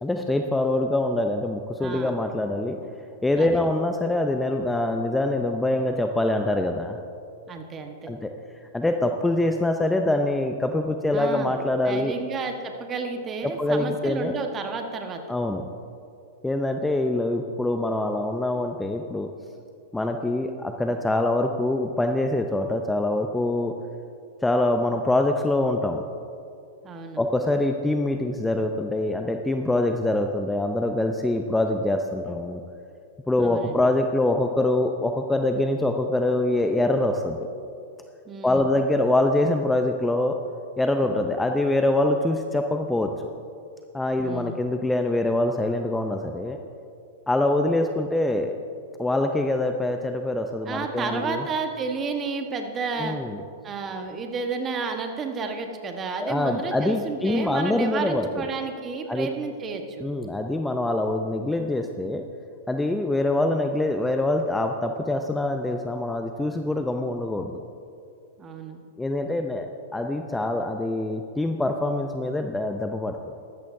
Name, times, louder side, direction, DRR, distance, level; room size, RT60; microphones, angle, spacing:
voice 1, 0.0-2.8 3.2-7.0 8.1-8.3 8.7-12.1 13.6-14.4 15.3-15.6 16.4-19.3 19.9-23.7 24.4-26.0 27.2-32.6 33.3-37.4 38.4-40.4 40.8-43.1 43.9-46.6 47.3-48.5 49.0-51.4 53.0-53.4 56.2-58.4 59.1-59.3 60.0-62.2 62.7-67.6 69.0-69.7 69.9-73.2, left 1 dB, 5° left, 5 dB, 0.6 m, -24 dB
voice 2, 1.8-2.1 3.4-3.6 7.5-8.1 11.1-11.6 11.8-15.2 26.8-27.2 33.4-33.9 38.3-38.7 44.2-44.6 50.7-53.2 53.6-60.1 68.4-68.8, right 4 dB, 25° right, 5 dB, 1.2 m, -31 dB
13.5 x 13.0 x 2.7 m, 2.5 s
hypercardioid pair, 105°, 0 cm